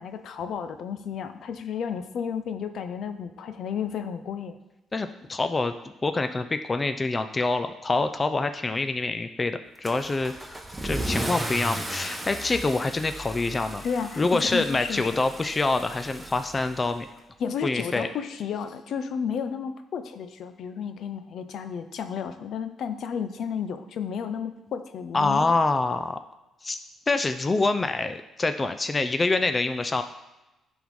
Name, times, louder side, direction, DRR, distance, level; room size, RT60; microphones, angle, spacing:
voice 1, 0.0-4.6 13.8-15.2 17.4-25.5, left 7 dB, 70° left, 9 dB, 0.6 m, -32 dB
voice 2, 4.9-5.7 6.0-13.8 14.2-17.1 17.6-18.1 25.1-26.2 26.6-26.8 27.1-30.0, left 3 dB, 25° left, 9 dB, 0.5 m, -26 dB
Car / Engine starting / Accelerating revving vroom, 9.8-17.2, right 1 dB, 10° right, 0.9 m, -35 dB
10.5 x 3.6 x 4.7 m, 0.99 s
cardioid pair, 90°, 0 cm